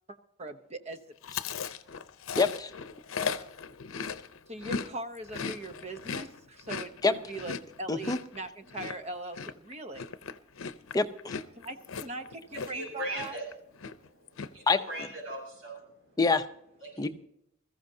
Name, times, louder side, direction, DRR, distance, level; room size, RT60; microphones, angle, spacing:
voice 1, 0.1-1.1 4.5-10.0 11.6-13.4, right 2 dB, 30° right, 9 dB, 0.8 m, -41 dB
Chewing mastication, 1.2-4.9 5.2-12.9 13.2-13.5 13.8-14.5, left 5 dB, 80° left, 0.6 m, -37 dB
voice 2, 2.4-2.7 7.0-7.1 7.9-8.2 10.9-11.3 14.7-14.8 16.2-16.4 17.0-17.1, left 4 dB, 20° left, 7 dB, 0.6 m, -25 dB
voice 3, 12.5-13.5 13.8-16.2 16.8-17.1, right 1 dB, 85° right, 0 dB, 5.9 m, -40 dB
21.0 x 14.5 x 2.7 m, 0.76 s
head